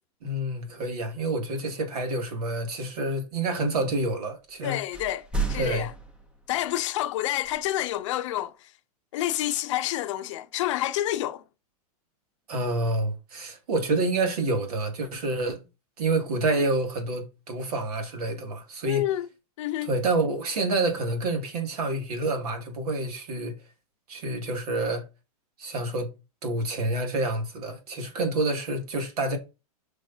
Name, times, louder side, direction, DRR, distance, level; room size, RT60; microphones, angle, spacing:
voice 1, 0.2-4.8 5.5-5.9 12.5-15.6 16.0-19.1 19.8-23.5 24.1-25.0 25.6-26.1 26.4-29.4, right 2 dB, 75° right, 2.5 m, -28 dB
voice 2, 4.6-5.9 6.5-8.7 9.1-11.4 18.8-19.3 19.6-19.9, left 14 dB, 50° left, 0.6 m, -28 dB
sound 1, 4.9-6.6 7.4-7.6, right 3 dB, 5° right, 0.7 m, -31 dB
8.0 x 5.2 x 2.8 m
supercardioid pair, 160°, 20 cm